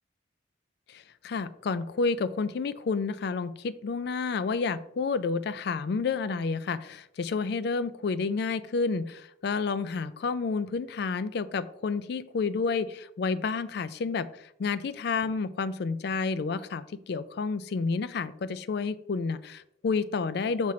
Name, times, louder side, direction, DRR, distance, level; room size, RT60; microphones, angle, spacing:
voice 1, 0.9-20.7, left 4 dB, 55° left, 15 dB, 0.3 m, -30 dB
6.1 x 4.0 x 4.2 m, 0.75 s
head